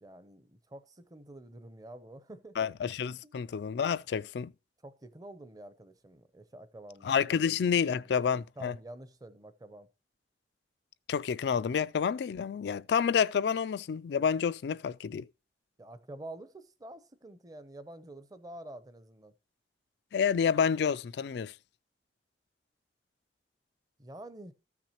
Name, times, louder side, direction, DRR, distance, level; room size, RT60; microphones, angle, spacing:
voice 1, 0.0-2.7 3.2-3.4 4.8-7.1 7.8-8.1 8.6-9.9 15.8-19.3 24.0-24.5, right 1 dB, 20° right, 0.7 m, -48 dB
voice 2, 2.6-4.5 7.0-8.7 11.1-15.2 20.1-21.5, left 7 dB, 65° left, 0.3 m, -29 dB
14.0 x 5.9 x 2.9 m
head